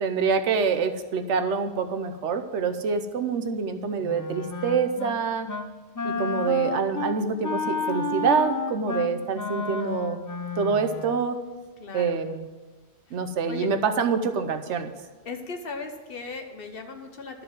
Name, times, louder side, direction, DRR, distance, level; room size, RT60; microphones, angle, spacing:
voice 1, 0.0-5.5 6.0-10.2 10.6-11.4 11.9-12.5 13.1-14.9, right 5 dB, 90° right, 8 dB, 1.1 m, -26 dB
Wind instrument woodwind instrument, 4.0-5.2 5.5-5.7 6.0-11.2, left 3 dB, 25° left, 0.5 m, -31 dB
voice 2, 11.8-12.2 13.1-13.2 13.5-13.7 15.2-17.4, left 4 dB, 55° left, 5 dB, 1.2 m, -37 dB
11.5 x 4.9 x 7.6 m, 1.3 s
omnidirectional pair, 1.1 m